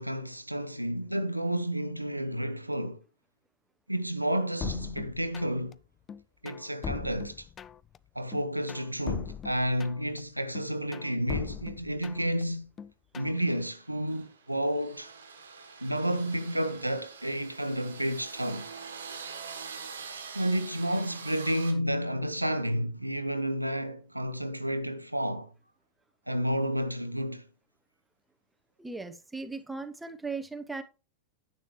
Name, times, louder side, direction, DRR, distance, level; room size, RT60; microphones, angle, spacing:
voice 1, 0.0-3.0 3.9-5.8 6.4-7.5 8.1-12.7 13.1-15.1 15.8-18.7 20.3-25.5 26.3-27.5, equal, 90° right, 0.6 m, -31 dB
sound 1, 4.6-5.7 6.1-8.0 8.3-10.2 10.5-12.4 12.8-13.4, left 8 dB, 25° left, 0.4 m, -39 dB
sound 2, 13.4-21.7, right 5 dB, 70° right, 1.4 m, -44 dB
voice 2, 28.8-30.8, right 4 dB, 5° right, 0.9 m, -37 dB
10.5 x 8.2 x 3.2 m
figure-of-eight pair, 90°, 0 cm